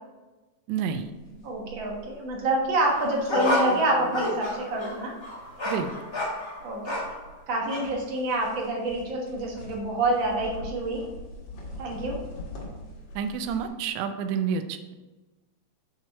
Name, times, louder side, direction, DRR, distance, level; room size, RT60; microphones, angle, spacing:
voice 1, 0.7-1.1 5.7-5.9 13.2-14.8, right 7 dB, 80° right, 8 dB, 1.9 m, -29 dB
sound 1, 0.9-13.7, left 2 dB, 80° left, 3.0 m, -39 dB
voice 2, 1.4-5.1 6.6-7.1 7.5-11.0 11.8-12.2, right 2 dB, 45° right, -2 dB, 1.9 m, -27 dB
sound 2, 2.8-7.3 7.7-7.9, left 1 dB, 25° left, 0.5 m, -30 dB
6.4 x 6.1 x 4.4 m, 1.2 s
omnidirectional pair, 3.3 m